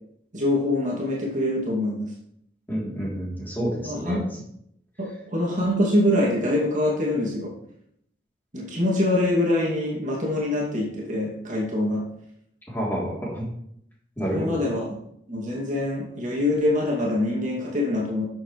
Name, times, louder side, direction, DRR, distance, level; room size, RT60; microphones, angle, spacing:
voice 1, 0.3-2.1 3.8-4.3 5.0-7.5 8.5-12.1 14.3-14.9 15.3-18.3, left 1 dB, 40° right, -4 dB, 2.5 m, -24 dB
voice 2, 2.7-4.2 12.7-13.4 14.2-14.6, equal, 10° left, -5 dB, 3.3 m, -29 dB
13.0 x 7.1 x 3.3 m, 0.73 s
head